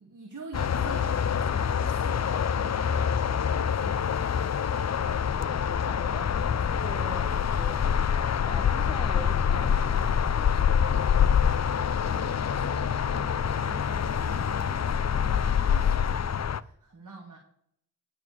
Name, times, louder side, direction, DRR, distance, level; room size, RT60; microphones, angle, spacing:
voice 1, 0.0-4.3 11.9-17.4, right 3 dB, 65° right, 1 dB, 2.0 m, -46 dB
sound 1, 0.5-16.6, left 7 dB, 55° left, 0.5 m, -26 dB
voice 2, 5.4-7.8 8.4-11.0, left 1 dB, 15° left, 5 dB, 1.1 m, -43 dB
11.0 x 4.6 x 7.2 m, 0.68 s
wide cardioid pair, 50°, 33 cm